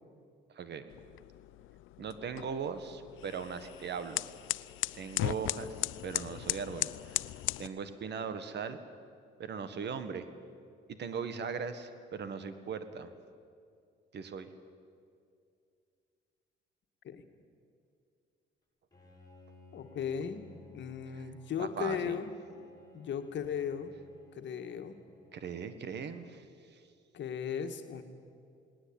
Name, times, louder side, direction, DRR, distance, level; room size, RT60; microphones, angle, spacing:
voice 1, 0.5-0.9 2.0-4.2 4.9-5.8 6.0-7.2 7.6-8.8 9.4-10.3 10.9-13.1 14.1-14.5 21.6-22.2 25.3-26.4 26.7-26.8, right 6 dB, 60° right, 11 dB, 1.7 m, -39 dB
sound 1, 0.9-7.7, left 17 dB, 85° left, 0.5 m, -37 dB
Bowed string instrument, 18.9-26.0, left 2 dB, 20° left, 7.9 m, -59 dB
voice 2, 19.7-20.5 20.7-22.3 22.9-23.9 24.3-25.0 27.1-28.0, left 7 dB, 65° left, 7 dB, 1.8 m, -36 dB
19.0 x 19.0 x 8.8 m, 2.4 s
cardioid pair, 90°, 20 cm